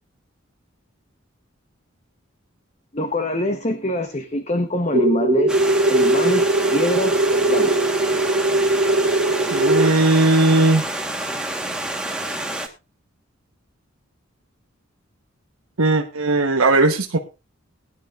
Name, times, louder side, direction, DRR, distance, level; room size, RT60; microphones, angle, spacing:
voice 1, 2.9-5.6 5.9-7.9, left 1 dB, 30° left, 7 dB, 1.0 m, -24 dB
sound 1, 4.9-9.9, right 2 dB, 60° right, 1.7 m, -20 dB
Stream, 5.5-12.7, right 1 dB, 5° right, 1.4 m, -28 dB
voice 2, 9.5-10.8 15.8-17.2, right 2 dB, 85° right, 3 dB, 1.2 m, -17 dB
20.5 x 10.5 x 2.5 m, 0.27 s
head